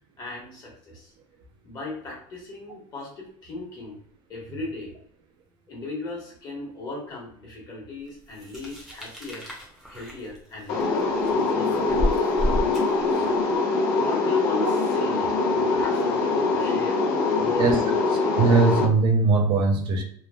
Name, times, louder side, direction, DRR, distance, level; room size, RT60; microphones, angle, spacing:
voice 1, 0.2-1.1 1.6-4.0 4.3-4.9 5.7-9.5 9.9-12.3 13.0-13.4 14.0-17.0 17.4-18.0, left 3 dB, 35° left, -2 dB, 1.3 m, -36 dB
sound 1, 8.3-13.5, equal, 5° right, 0.8 m, -31 dB
sound 2, 10.7-18.8, left 3 dB, 80° left, 0.7 m, -23 dB
voice 2, 17.4-17.8 18.4-20.0, right 3 dB, 45° right, 2 dB, 0.5 m, -20 dB
3.0 x 2.3 x 2.3 m, 0.64 s
supercardioid pair, 135°, 11 cm